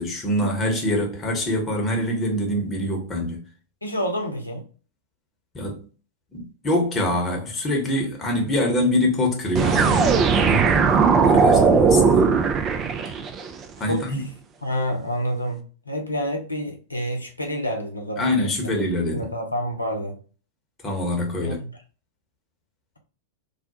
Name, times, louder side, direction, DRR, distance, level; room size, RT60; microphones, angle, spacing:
voice 1, 0.0-3.4 5.5-5.9 6.3-10.8 11.2-12.3 13.0-13.2 13.8-14.2 18.2-19.3 20.8-21.6, left 1 dB, 20° left, 1.0 m, -25 dB
voice 2, 3.8-4.6 13.9-14.1 14.6-18.7 19.1-20.2 21.4-21.7, equal, 85° left, 0.6 m, -28 dB
sound 1, 9.5-13.5, right 5 dB, 30° right, 0.4 m, -18 dB
2.4 x 2.1 x 2.8 m
figure-of-eight pair, 95°, 0 cm